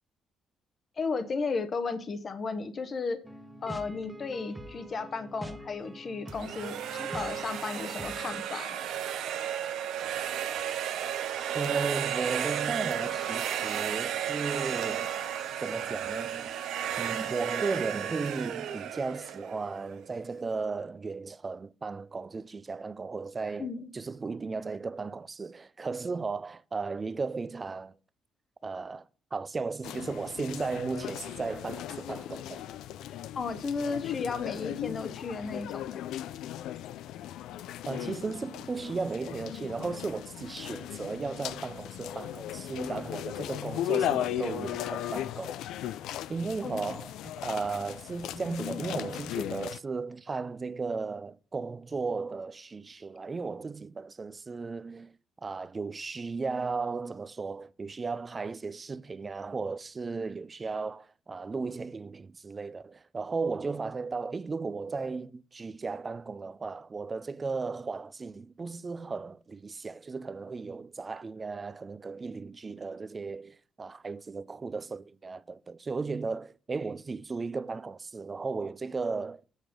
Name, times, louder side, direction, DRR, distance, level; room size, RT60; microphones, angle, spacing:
voice 1, 1.0-3.2 3.6-8.8 23.6-23.9 33.4-36.0 46.6-46.8, left 4 dB, 45° left, 0.8 m, -34 dB
sound 1, 3.2-8.4, equal, 5° right, 1.1 m, -44 dB
sound 2, 6.3-20.1, right 9 dB, 80° right, 0.7 m, -33 dB
voice 2, 11.5-15.2 15.6-16.6 17.0-23.7 23.9-28.0 28.6-32.6 37.9-45.6 46.3-55.1 55.4-79.5, right 4 dB, 30° right, 0.4 m, -35 dB
sound 3, 29.8-49.8, left 12 dB, 85° left, 0.4 m, -37 dB
8.0 x 6.2 x 5.1 m
cardioid pair, 90°, 0 cm